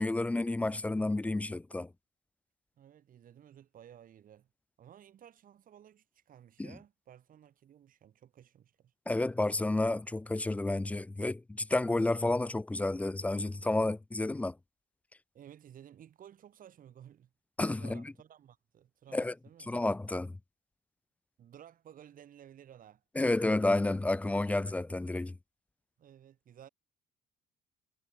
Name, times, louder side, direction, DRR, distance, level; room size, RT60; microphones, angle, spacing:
voice 1, 0.0-1.9 6.6-6.7 9.1-14.6 17.6-18.0 19.1-19.3 19.7-20.4 23.2-25.4, left 2 dB, 10° left, 0.3 m, -30 dB
voice 2, 2.8-4.5 4.8-8.9 15.3-17.3 17.8-19.7 21.4-23.0 26.0-26.7, right 10 dB, 55° right, 7.9 m, -55 dB
cardioid pair, 110°, 17 cm